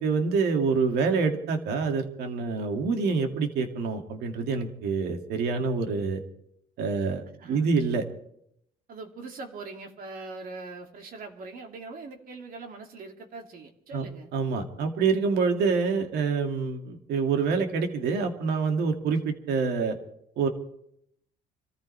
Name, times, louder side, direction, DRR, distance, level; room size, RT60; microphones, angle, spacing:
voice 1, 0.0-6.2 6.8-8.0 13.9-14.1 14.3-20.0 20.4-20.5, right 5 dB, 75° right, 5 dB, 2.4 m, -26 dB
voice 2, 7.4-7.7 8.9-14.3, right 3 dB, 55° right, 3 dB, 2.8 m, -42 dB
26.5 x 14.5 x 3.4 m, 0.73 s
cardioid pair, 110°, 17 cm